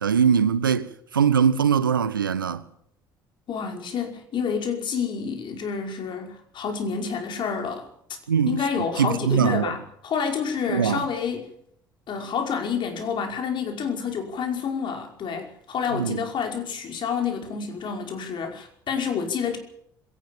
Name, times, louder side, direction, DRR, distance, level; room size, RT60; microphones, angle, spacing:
voice 1, 0.0-2.6 8.3-9.7 10.7-11.0 15.9-16.2, right 7 dB, 85° right, 1.0 m, -22 dB
voice 2, 3.5-7.9 8.5-11.5 12.1-19.6, left 6 dB, 45° left, 5.4 m, -28 dB
21.5 x 18.0 x 7.4 m
figure-of-eight pair, 60°, 11 cm